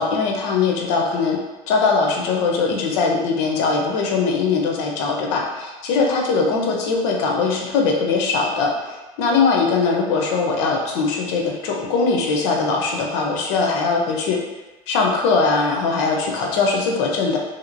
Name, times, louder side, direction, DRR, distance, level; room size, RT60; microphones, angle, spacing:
voice 1, 0.0-1.4 1.7-14.4 14.9-17.4, left 4 dB, 85° left, 0 dB, 0.7 m, -21 dB
3.2 x 2.8 x 2.5 m, 1.1 s
supercardioid pair, 120°, 14 cm